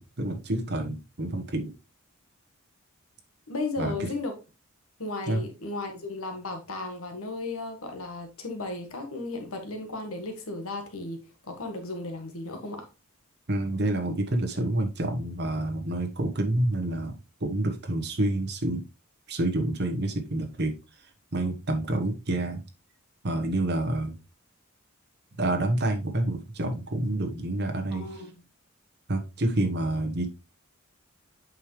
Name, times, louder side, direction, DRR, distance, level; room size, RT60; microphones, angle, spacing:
voice 1, 0.0-1.7 3.8-4.1 5.3-5.4 13.5-17.1 17.4-18.8 19.3-20.7 21.3-22.6 23.2-24.2 25.4-28.2 29.1-30.3, right 1 dB, 55° right, 1.2 m, -28 dB
voice 2, 3.5-4.3 5.0-12.9 27.9-28.3, left 2 dB, 80° left, 1.6 m, -35 dB
8.3 x 5.1 x 3.2 m
head